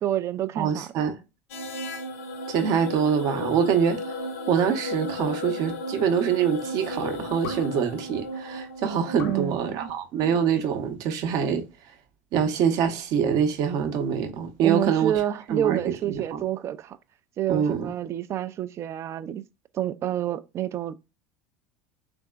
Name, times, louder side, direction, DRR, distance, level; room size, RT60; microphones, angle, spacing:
voice 1, 0.0-0.9 9.2-9.9 14.6-17.0 17.4-19.4 19.7-20.9, right 11 dB, 35° right, 0.3 m, -28 dB
voice 2, 0.6-1.2 2.5-4.1 4.5-11.6 12.3-15.1 15.5-16.4 17.5-17.9, right 7 dB, 50° right, 0.8 m, -25 dB
sound 1, 1.5-9.9, left 2 dB, 65° left, 0.7 m, -34 dB
3.6 x 3.4 x 2.4 m
figure-of-eight pair, 70°, 8 cm